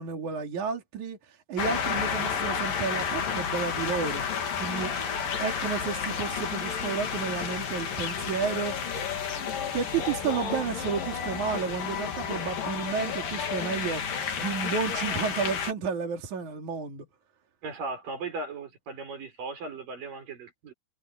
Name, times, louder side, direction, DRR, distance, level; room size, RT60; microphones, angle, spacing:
voice 1, 0.0-4.9 5.4-8.8 9.7-14.0 14.4-17.1, right 6 dB, 65° right, 4.0 m, -31 dB
sound 1, 1.6-15.7, left 7 dB, 90° left, 4.6 m, -31 dB
voice 2, 17.6-20.7, right 3 dB, 80° right, 7.4 m, -37 dB
omnidirectional pair, 3.8 m